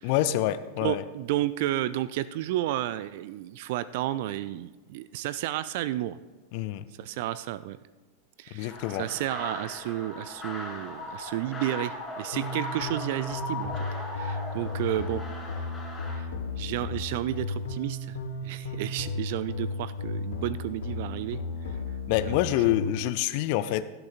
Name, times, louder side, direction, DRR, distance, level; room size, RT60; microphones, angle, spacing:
voice 1, 0.0-1.0 6.5-6.9 8.5-9.1 22.1-23.8, left 14 dB, 45° left, 13 dB, 0.6 m, -26 dB
voice 2, 0.8-6.2 7.0-7.8 8.4-13.7 14.1-15.2 16.1-16.3 16.6-18.2 18.4-21.8 22.3-22.4, right 14 dB, 50° right, 16 dB, 0.3 m, -32 dB
sound 1, 8.7-16.2, left 2 dB, 15° left, 4.5 m, -38 dB
sound 2, 12.3-23.0, left 2 dB, 60° left, 1.3 m, -34 dB
17.0 x 12.0 x 2.5 m, 1.2 s
figure-of-eight pair, 90°, 0 cm